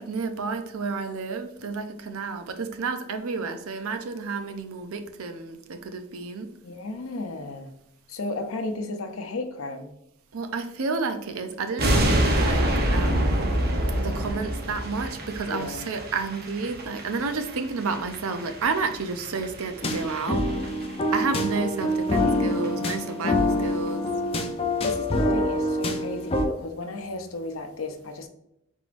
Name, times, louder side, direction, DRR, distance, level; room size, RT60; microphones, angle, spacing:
voice 1, 0.0-6.5 10.3-12.6 12.9-13.4 14.0-20.5 21.1-24.1, right 4 dB, 85° right, 8 dB, 0.6 m, -31 dB
voice 2, 6.6-7.7 8.1-9.9 15.5-15.9 22.2-23.0 24.8-28.3, left 2 dB, 75° left, 7 dB, 0.6 m, -34 dB
sound 1, 11.8-21.0 21.2-21.4 21.8-21.9 22.2-22.3 22.5-22.9 23.1-23.2, right 1 dB, 45° right, 0.8 m, -27 dB
sound 2, 19.8-26.5, left 1 dB, 25° left, 0.4 m, -26 dB
5.1 x 3.7 x 2.5 m, 0.81 s
head